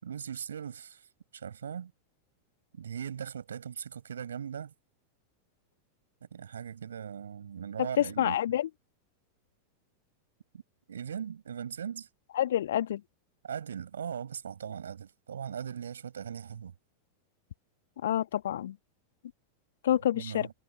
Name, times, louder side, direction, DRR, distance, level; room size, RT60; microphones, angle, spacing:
voice 1, 0.0-1.1 1.3-1.9 2.7-4.7 6.3-8.4 10.9-12.1 13.4-16.7 20.1-20.5, right 8 dB, 65° right, 6.3 m, -39 dB
voice 2, 7.8-8.7 12.3-13.0 18.0-18.8 19.8-20.5, left 11 dB, 60° left, 1.9 m, -28 dB
figure-of-eight pair, 90°, 0 cm